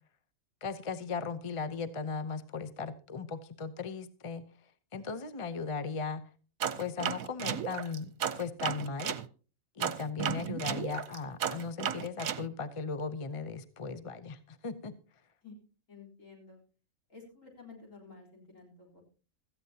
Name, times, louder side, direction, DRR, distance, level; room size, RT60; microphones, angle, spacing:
voice 1, 0.6-4.4 4.9-6.2 6.8-9.2 9.8-14.9, left 5 dB, 30° left, 12 dB, 0.6 m, -37 dB
sound 1, 6.6-9.2 9.8-12.4, right 9 dB, 75° right, 1.2 m, -34 dB
voice 2, 15.9-16.6 17.1-19.0, left 4 dB, 65° left, -1 dB, 4.3 m, -52 dB
17.0 x 14.0 x 2.8 m, 0.36 s
omnidirectional pair, 1.5 m